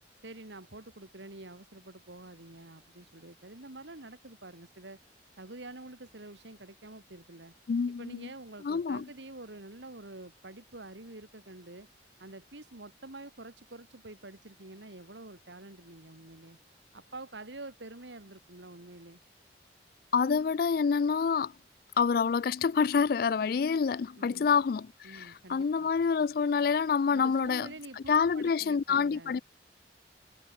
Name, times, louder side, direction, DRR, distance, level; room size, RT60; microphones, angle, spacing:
voice 1, 0.2-5.0 5.4-7.5 8.0-11.9 12.2-16.6 16.9-19.2 24.2-24.5 25.0-25.9 27.1-29.3, right 2 dB, 85° right, 2.7 m, -47 dB
voice 2, 7.7-8.3 8.6-9.1 20.1-21.5 22.0-27.7 28.1-29.4, left 6 dB, 55° left, 0.3 m, -27 dB
head